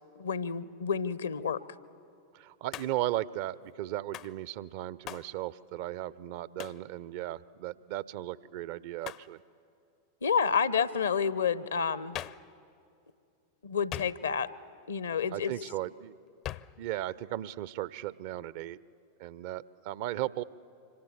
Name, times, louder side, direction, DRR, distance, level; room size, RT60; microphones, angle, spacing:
voice 1, 0.2-1.6 10.2-12.2 13.6-14.5 14.9-15.5, left 6 dB, 70° left, 17 dB, 0.8 m, -29 dB
voice 2, 2.3-9.4 15.3-16.1 16.8-18.8 19.2-20.4, right 14 dB, 50° right, 20 dB, 0.5 m, -36 dB
Hands, 2.7-3.1 4.1-4.4 5.1-5.3 6.6-6.9 9.0-9.3 12.1-12.5 13.9-14.5 16.4-16.8, left 12 dB, 35° left, 0.5 m, -41 dB
26.0 x 25.5 x 7.3 m, 2.5 s
figure-of-eight pair, 90°, 0 cm